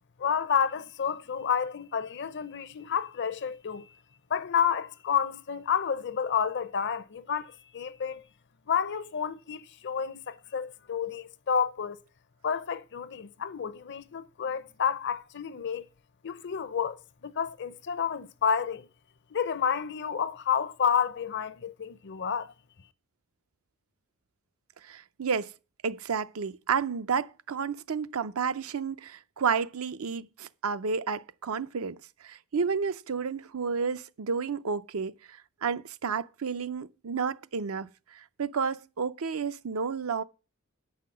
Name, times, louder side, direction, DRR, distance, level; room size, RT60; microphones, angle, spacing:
voice 1, 0.2-3.9 4.3-8.2 8.7-12.0 12.4-15.9 16.2-18.9 19.3-22.5, left 7 dB, 55° left, 0.6 m, -30 dB
voice 2, 24.8-25.5 25.8-40.2, right 5 dB, 70° right, 0.6 m, -31 dB
9.1 x 5.8 x 7.6 m
head